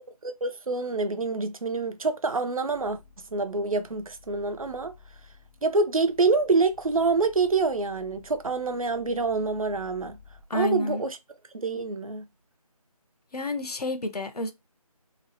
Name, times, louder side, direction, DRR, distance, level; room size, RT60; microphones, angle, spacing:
voice 1, 0.2-3.0 3.3-4.9 5.6-10.2 10.5-11.2 11.5-12.2, right 3 dB, 65° right, 0.5 m, -26 dB
sound 1, 2.7-10.4, left 5 dB, 35° left, 0.4 m, -54 dB
voice 2, 10.5-11.0 13.3-14.5, left 1 dB, 75° left, 0.7 m, -29 dB
2.9 x 2.0 x 2.9 m
figure-of-eight pair, 165°, 20 cm